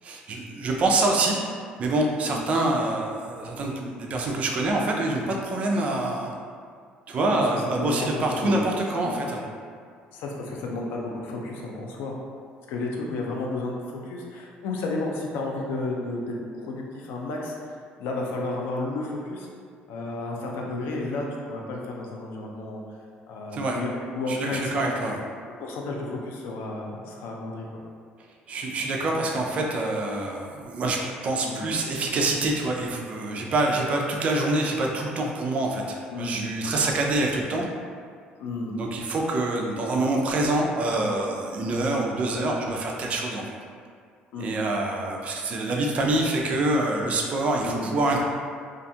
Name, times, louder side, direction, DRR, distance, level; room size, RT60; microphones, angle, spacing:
voice 1, 0.0-1.4 1.8-6.3 7.1-9.4 23.5-23.8 24.3-25.2 28.5-37.6 38.7-43.6 44.4-48.2, right 2 dB, 40° right, 0 dB, 0.4 m, -26 dB
voice 2, 7.3-8.1 8.4-8.6 9.0-9.2 10.1-12.2 12.7-19.5 19.9-22.8 23.3-24.9 25.6-27.8 31.4-31.6 36.1-36.5 38.4-38.7 42.3-42.6 44.3-44.5 47.6-47.9, left 2 dB, 85° left, -1 dB, 0.4 m, -32 dB
2.4 x 2.2 x 2.7 m, 2.1 s
cardioid pair, 135°, 3 cm